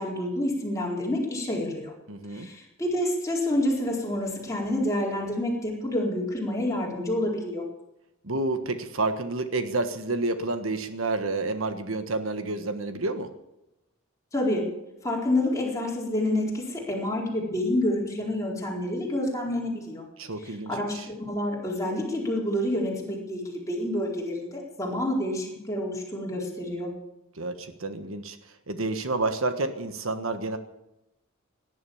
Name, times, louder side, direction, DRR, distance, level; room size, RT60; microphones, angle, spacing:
voice 1, 0.0-1.9 2.3-7.6 14.3-14.7 15.0-20.1 20.4-26.9, left 1 dB, 15° left, -3 dB, 4.4 m, -28 dB
voice 2, 2.1-2.5 8.2-13.3 20.2-21.0 27.3-28.4 28.7-30.6, right 2 dB, 75° right, 9 dB, 1.4 m, -29 dB
18.0 x 11.0 x 7.2 m, 0.90 s
head